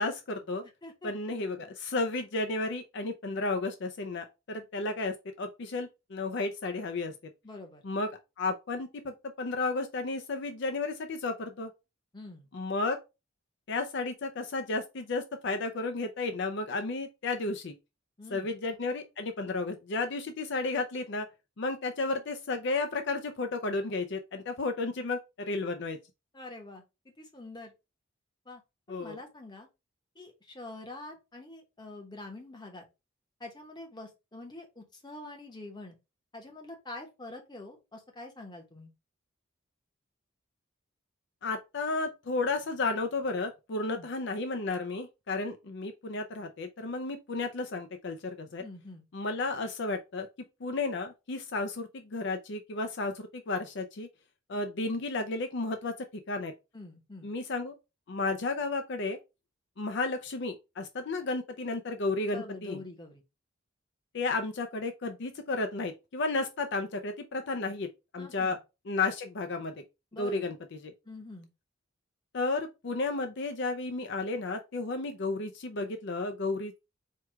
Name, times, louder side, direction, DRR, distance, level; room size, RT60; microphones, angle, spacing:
voice 1, 0.0-0.6 1.0-7.2 7.8-8.1 8.4-11.7 12.5-13.0 13.7-17.7 18.3-21.3 21.6-26.0 28.9-29.2 41.4-48.6 49.1-50.3 50.6-54.1 54.5-55.9 56.3-56.5 57.2-57.7 58.1-59.2 59.8-62.8 64.1-67.9 68.1-68.6 68.9-69.8 70.2-70.9 72.3-76.8, left 3 dB, 60° left, 0.5 m, -33 dB
voice 2, 0.6-1.1 7.4-7.8 12.1-12.5 18.2-18.5 26.3-27.7 28.4-28.6 28.9-29.7 30.1-32.9 33.4-36.0 36.3-38.9 43.9-44.1 48.6-49.0 56.7-57.3 62.3-63.2 68.2-68.6 70.1-70.5 71.0-71.5, left 2 dB, 20° left, 1.0 m, -45 dB
4.7 x 2.3 x 4.6 m
head